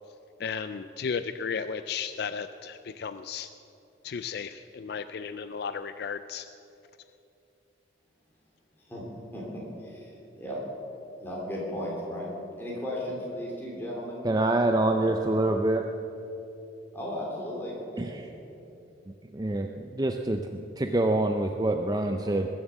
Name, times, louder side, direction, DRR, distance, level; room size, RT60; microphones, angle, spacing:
voice 1, 0.4-3.5 4.0-6.5, left 6 dB, 55° left, 11 dB, 0.4 m, -34 dB
voice 2, 9.3-10.6 11.2-14.3 14.9-15.4 16.9-18.2, equal, 10° left, -5 dB, 3.5 m, -36 dB
voice 3, 14.2-15.8 18.0-18.3 19.3-22.5, right 2 dB, 20° right, 5 dB, 0.4 m, -26 dB
20.5 x 7.3 x 7.3 m, 2.9 s
head